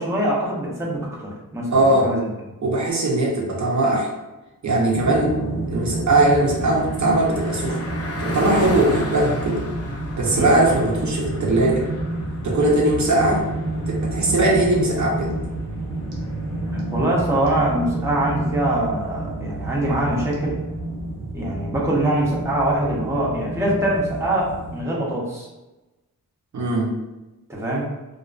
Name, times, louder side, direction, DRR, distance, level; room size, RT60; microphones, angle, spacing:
voice 1, 0.0-2.2 10.3-10.5 16.7-20.6 21.3-25.5 27.5-27.8, right 1 dB, 10° right, -4 dB, 0.6 m, -23 dB
voice 2, 1.7-2.1 2.6-4.1 4.6-5.4 5.7-7.8 8.2-9.6 10.2-11.9 12.4-13.4 13.9-15.3 26.5-26.9, right 2 dB, 55° right, -2 dB, 0.6 m, -20 dB
sound 1, 4.9-24.8, right 2 dB, 90° right, 0.7 m, -29 dB
Car passing by, 5.5-17.3, left 2 dB, 45° left, 0.5 m, -36 dB
2.4 x 2.3 x 2.3 m, 1.1 s
cardioid pair, 75°, 35 cm